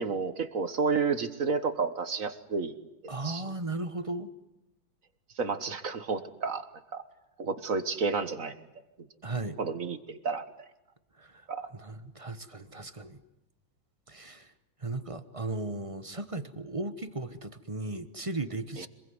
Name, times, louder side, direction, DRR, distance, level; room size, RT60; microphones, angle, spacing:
voice 1, 0.0-2.7 3.2-3.4 5.4-6.7 6.9-7.0 7.4-8.5 9.6-10.4 11.5-11.7 18.8-18.9, right 4 dB, 45° right, 11 dB, 1.7 m, -30 dB
voice 2, 3.1-4.3 9.2-9.6 11.2-11.4 11.7-13.2 14.1-14.5 14.8-18.9, right 2 dB, 20° right, 12 dB, 0.9 m, -36 dB
26.5 x 21.5 x 9.6 m, 0.93 s
omnidirectional pair, 2.2 m